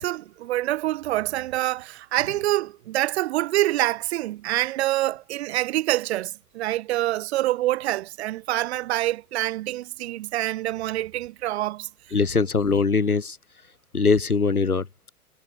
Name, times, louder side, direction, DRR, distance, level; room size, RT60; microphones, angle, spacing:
voice 1, 0.0-11.9, right 15 dB, 45° right, 4.1 m, -26 dB
voice 2, 12.1-13.4 13.9-14.8, left 4 dB, 80° left, 4.7 m, -21 dB
figure-of-eight pair, 110°, 44 cm